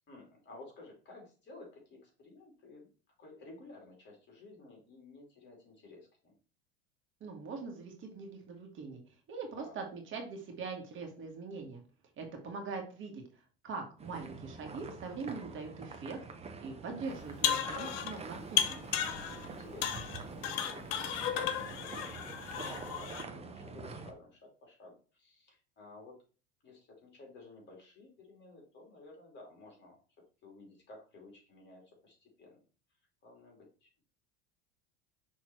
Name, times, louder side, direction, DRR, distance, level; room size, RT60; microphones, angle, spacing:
voice 1, 0.0-2.9 3.2-6.4 9.6-9.8 19.3-26.2 26.6-32.6 33.2-34.0, left 2 dB, 35° left, 0 dB, 3.1 m, -54 dB
voice 2, 7.2-9.0 9.3-11.8 12.2-13.2 13.6-18.8, right 4 dB, 40° right, 2 dB, 1.7 m, -42 dB
sound 1, 14.0-24.1, right 4 dB, 20° right, 0.9 m, -46 dB
sound 2, 17.2-18.2 18.6-19.5 19.8-23.2, left 10 dB, 70° left, 1.0 m, -34 dB
6.1 x 3.6 x 4.5 m, 0.37 s
supercardioid pair, 110°, 30 cm